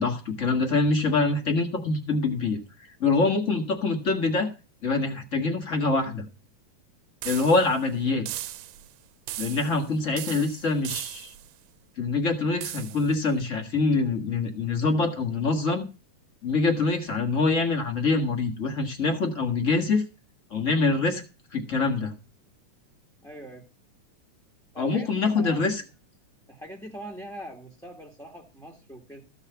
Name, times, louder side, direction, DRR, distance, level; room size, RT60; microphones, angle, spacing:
voice 1, 0.0-2.6 3.0-4.5 4.8-6.2 7.2-8.2 9.4-11.3 12.0-15.8 16.4-20.0 20.5-21.2 21.5-22.1 24.8-25.7, left 3 dB, 35° left, 4 dB, 1.5 m, -25 dB
sound 1, 7.2-7.8 8.3-8.9 9.3-9.9 10.2-11.5 12.6-13.1, right 14 dB, 80° right, 2.0 m, -37 dB
voice 2, 23.2-23.7 24.7-25.8 26.5-29.2, right 1 dB, ahead, 0 dB, 1.4 m, -42 dB
14.5 x 5.7 x 6.8 m, 0.31 s
omnidirectional pair, 3.3 m